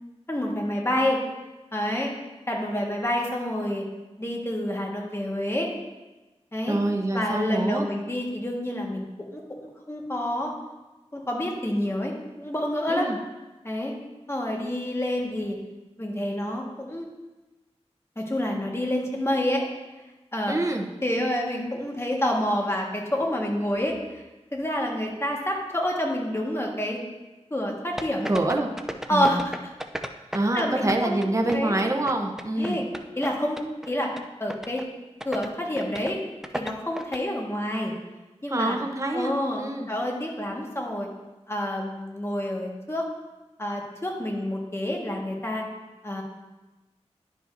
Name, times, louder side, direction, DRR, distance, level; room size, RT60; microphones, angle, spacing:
voice 1, 0.3-1.2 1.7-2.1 2.5-3.8 4.2-5.7 6.5-6.8 7.1-9.4 9.9-10.5 11.1-13.1 13.6-13.9 14.3-15.6 16.0-17.1 18.1-19.7 20.3-20.6 21.0-24.2 24.5-27.0 27.5-28.3 29.1-29.7 30.5-31.8 32.6-32.9 33.2-34.1 34.4-34.8 35.2-36.2 36.5-37.9 38.4-38.8 39.1-41.1 41.5-43.1 43.6-45.6 46.0-46.2, left 1 dB, 25° left, -1 dB, 1.6 m, -28 dB
voice 2, 6.7-7.9 12.9-13.2 20.5-20.9 28.3-28.7 29.1-29.4 30.3-32.8 38.5-39.3 39.6-39.9, right 2 dB, 25° right, 2 dB, 0.9 m, -26 dB
sound 1, 28.0-30.6 30.9-33.3 33.6-33.9 34.2-34.3 34.5-34.8 35.2-35.5 35.8-36.1 36.4-37.2, equal, 5° right, 0.5 m, -34 dB
11.5 x 5.3 x 2.6 m, 1.1 s
cardioid pair, 45°, 11 cm